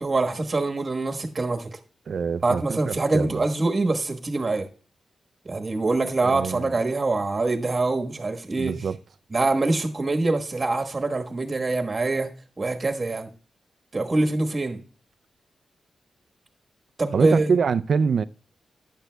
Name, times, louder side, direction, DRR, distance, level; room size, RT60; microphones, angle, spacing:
voice 1, 0.0-1.8 2.4-4.7 5.4-8.8 9.3-12.3 12.6-13.3 13.9-14.8 17.0-17.5, right 2 dB, 30° right, 1.3 m, -24 dB
voice 2, 2.1-3.4 6.2-6.8 8.6-9.0 17.1-18.2, right 6 dB, 60° right, 0.4 m, -25 dB
14.5 x 10.5 x 2.2 m
wide cardioid pair, 125°, 0 cm